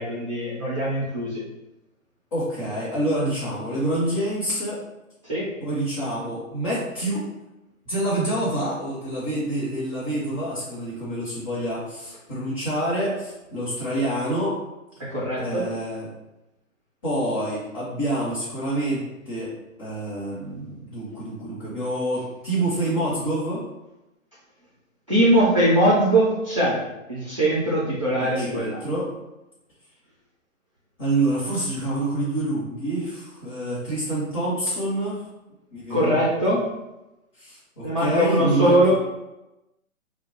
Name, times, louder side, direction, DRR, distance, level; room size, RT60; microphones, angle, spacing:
voice 1, 0.0-1.4 5.2-5.5 15.0-15.6 25.1-26.8 27.1-28.8 35.9-36.7 37.8-39.0, right 1 dB, 25° right, -8 dB, 0.4 m, -21 dB
voice 2, 2.3-4.8 5.6-7.2 7.9-14.6 15.4-16.1 17.0-19.5 19.8-23.6 28.2-29.1 31.0-35.2 35.7-36.1 37.3-39.0, right 1 dB, 25° left, -10 dB, 0.8 m, -27 dB
2.4 x 2.2 x 4.0 m, 0.96 s
hypercardioid pair, 150°, 41 cm